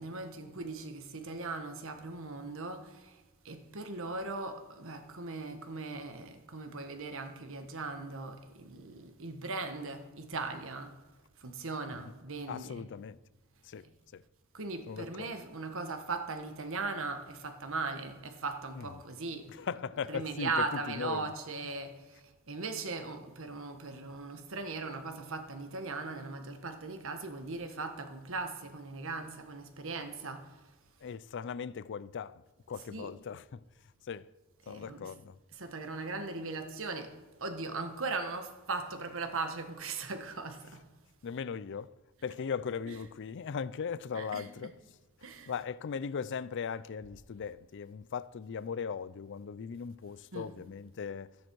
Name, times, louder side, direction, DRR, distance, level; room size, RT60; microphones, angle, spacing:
voice 1, 0.0-11.0 11.4-12.9 13.8-13.9 14.5-19.7 20.1-30.7 32.9-33.1 34.6-35.1 35.5-40.9 42.9-43.0 44.1-44.7 45.2-45.5 50.3-50.5, right 3 dB, 65° right, 1.4 m, -39 dB
voice 2, 12.5-13.2 13.6-13.9 14.1-14.2 14.9-15.3 18.7-18.9 19.6-21.3 31.0-32.4 32.7-33.6 34.1-34.3 34.7-35.4 41.2-41.9 42.2-44.7 45.5-51.3, left 6 dB, 55° left, 0.4 m, -38 dB
14.0 x 10.5 x 4.6 m
head